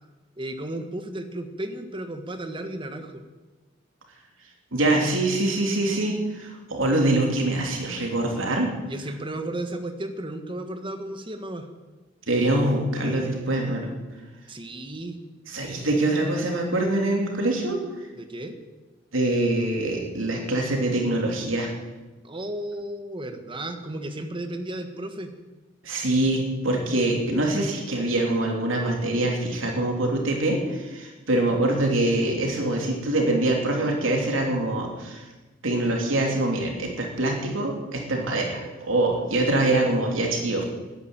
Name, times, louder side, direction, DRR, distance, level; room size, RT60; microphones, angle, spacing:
voice 1, 0.4-3.2 8.9-11.7 14.5-15.2 18.2-18.6 22.2-25.3, right 1 dB, 25° right, 7 dB, 1.4 m, -34 dB
voice 2, 4.7-8.7 12.3-13.9 15.5-17.8 19.1-21.7 25.8-35.2 35.6-40.6, right 2 dB, 85° right, 1 dB, 3.2 m, -24 dB
13.0 x 10.5 x 8.9 m, 1.2 s
head